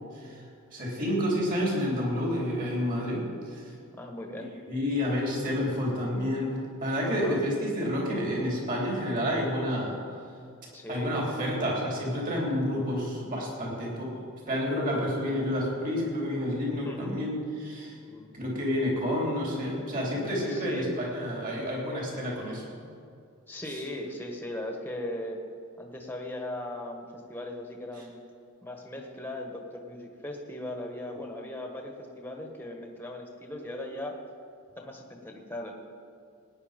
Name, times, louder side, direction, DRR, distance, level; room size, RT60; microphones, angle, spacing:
voice 1, 0.7-3.7 4.7-6.5 6.8-10.0 10.9-14.1 14.5-18.0 18.3-22.7, equal, 40° right, -3 dB, 3.6 m, -29 dB
voice 2, 3.9-4.5 7.0-7.4 10.7-11.1 16.8-17.2 18.1-18.3 20.5-21.0 23.5-25.4 25.8-28.2 28.6-34.2 34.8-35.7, left 1 dB, 10° left, 2 dB, 1.4 m, -38 dB
17.5 x 9.8 x 5.2 m, 2.4 s
head